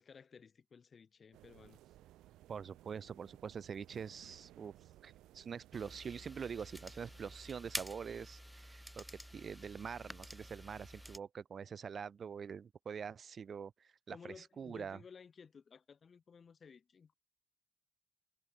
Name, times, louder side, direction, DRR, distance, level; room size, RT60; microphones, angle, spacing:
voice 1, 0.0-1.8 14.1-17.1, left 6 dB, 45° left, 6.5 m, -56 dB
sound 1, 1.3-7.9, right 15 dB, 90° right, 5.4 m, -61 dB
voice 2, 2.5-4.7 5.0-9.0 9.3-15.0, right 6 dB, 50° right, 1.8 m, -45 dB
sound 2, 5.7-11.2, equal, ahead, 4.7 m, -49 dB
cardioid pair, 90°, 0 cm